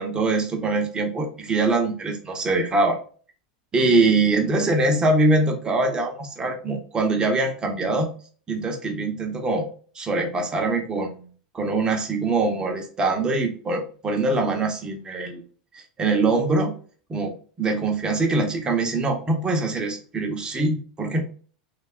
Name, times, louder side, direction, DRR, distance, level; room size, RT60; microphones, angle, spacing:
voice 1, 0.0-3.0 3.7-8.1 8.5-9.7 10.0-11.2 11.5-15.4 15.7-16.7 17.1-21.2, right 3 dB, 20° right, 3 dB, 0.7 m, -23 dB
2.6 x 2.2 x 2.4 m, 0.41 s
hypercardioid pair, 105°, 4 cm